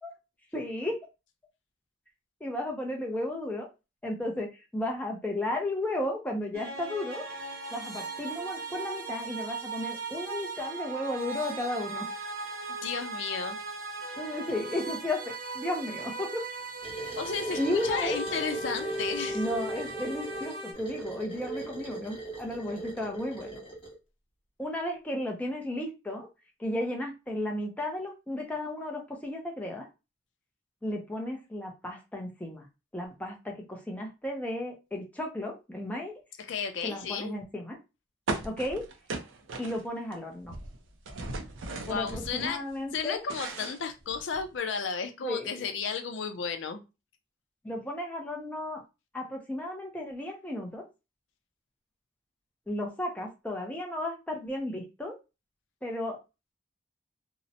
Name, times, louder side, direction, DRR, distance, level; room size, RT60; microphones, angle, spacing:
voice 1, 0.5-0.9 2.4-3.7 4.0-4.5 4.7-7.2 7.7-12.1 14.2-16.4 17.6-18.2 19.3-23.6 24.6-26.3 26.6-29.9 30.8-32.7 32.9-36.1 36.8-37.8 38.4-38.8 39.6-40.5 41.9-43.2 45.2-45.7 47.6-48.8 49.1-50.8 52.7-55.2 55.8-56.2, left 1 dB, 10° left, 0.5 m, -34 dB
sound 1, 6.5-20.7, right 2 dB, 50° right, 0.7 m, -38 dB
voice 2, 12.7-13.6 17.2-19.4 36.4-37.3 41.7-42.6 42.9-46.8, left 6 dB, 80° left, 0.5 m, -33 dB
sound 2, 16.8-23.9, right 3 dB, 30° left, 1.0 m, -39 dB
sound 3, 38.3-40.2 40.4-42.6 43.0-44.5, right 3 dB, 90° right, 0.5 m, -37 dB
2.7 x 2.0 x 2.6 m
head